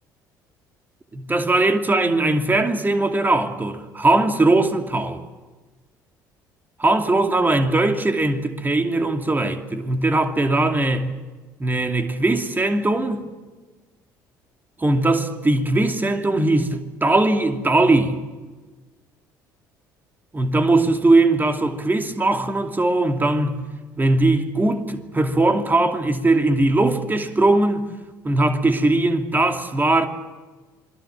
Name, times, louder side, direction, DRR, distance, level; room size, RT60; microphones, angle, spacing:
voice 1, 1.1-5.2 6.8-11.1 11.6-13.2 14.8-18.2 20.3-23.6 24.0-27.9 28.2-30.1, right 2 dB, 20° right, 2.7 m, -20 dB
27.5 x 22.5 x 7.4 m
figure-of-eight pair, 55°, 10 cm